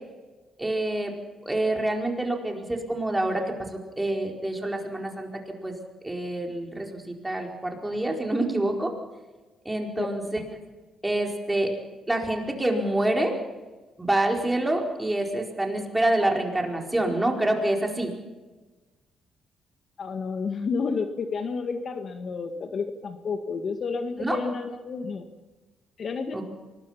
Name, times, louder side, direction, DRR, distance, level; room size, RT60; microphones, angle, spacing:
voice 1, 0.6-1.1 1.4-3.4 4.0-5.3 5.6-5.8 6.0-8.9 9.6-10.4 11.0-11.7 12.1-13.3 14.0-18.1 24.2-24.4 26.3-26.4, right 1 dB, 10° right, 2 dB, 4.6 m, -26 dB
voice 2, 20.0-25.3 26.0-26.4, left 5 dB, 50° left, 7 dB, 1.8 m, -30 dB
24.5 x 20.5 x 5.9 m, 1.2 s
cardioid pair, 90°, 0 cm